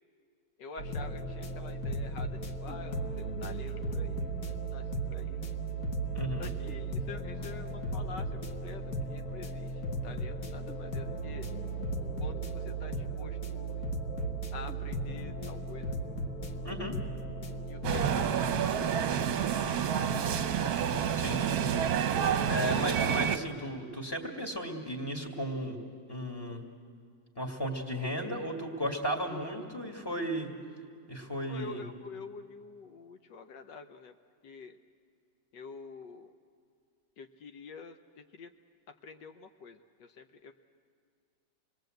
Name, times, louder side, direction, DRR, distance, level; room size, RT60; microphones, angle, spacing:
voice 1, 0.6-5.4 6.4-11.5 12.0-13.8 14.5-16.0 17.7-19.2 22.5-22.9 31.4-34.1 34.4-34.8 35.5-36.3 37.2-38.5 39.0-40.5, left 4 dB, 75° left, 7 dB, 1.5 m, -47 dB
sound 1, 0.8-18.2, right 2 dB, 55° left, 1.7 m, -36 dB
voice 2, 6.1-6.5 16.6-17.0 21.2-21.6 22.5-25.8 26.1-26.6 27.4-30.5 31.1-31.8, equal, 15° left, 0 dB, 2.2 m, -35 dB
sound 2, 17.8-23.4, right 8 dB, 60° right, 1.2 m, -29 dB
27.5 x 21.0 x 7.9 m, 2.2 s
omnidirectional pair, 1.9 m